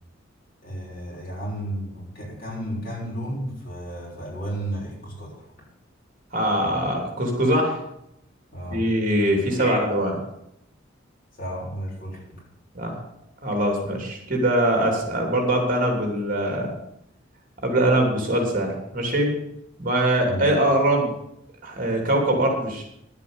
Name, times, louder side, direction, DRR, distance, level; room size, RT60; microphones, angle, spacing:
voice 1, 0.6-5.5 8.5-8.9 9.5-9.8 11.4-12.4 20.2-20.5, equal, 50° left, -4 dB, 6.2 m, -33 dB
voice 2, 6.3-7.8 8.7-10.1 12.7-12.9 13.4-16.7 17.6-19.3 19.8-21.1 21.6-22.8, right 1 dB, 45° right, 2 dB, 3.0 m, -22 dB
11.0 x 8.2 x 8.0 m, 0.78 s
head